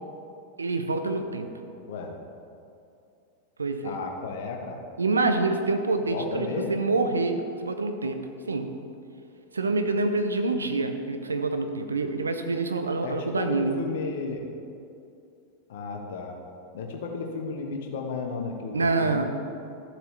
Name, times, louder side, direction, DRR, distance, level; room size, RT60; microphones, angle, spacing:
voice 1, 0.6-1.5 3.6-4.0 5.0-8.7 9.5-13.8 18.7-19.2, right 3 dB, 75° right, 7 dB, 0.7 m, -26 dB
voice 2, 3.8-4.8 6.1-6.8 13.0-14.5 15.7-16.4 16.7-19.2, left 4 dB, 55° left, 2 dB, 1.2 m, -33 dB
13.0 x 7.4 x 3.3 m, 2.6 s
figure-of-eight pair, 90°, 0 cm